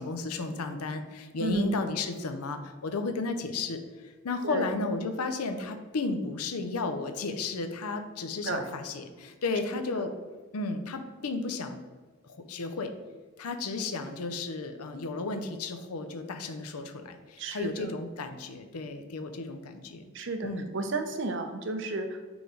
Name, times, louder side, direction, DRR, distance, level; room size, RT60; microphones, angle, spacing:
voice 1, 0.0-10.1 10.5-11.8 12.2-12.9 13.4-20.0 20.4-20.7, left 3 dB, 90° left, 8 dB, 0.6 m, -33 dB
voice 2, 17.4-17.9 20.1-22.3, right 2 dB, 55° right, 6 dB, 0.6 m, -32 dB
4.8 x 4.0 x 4.9 m, 1.4 s
head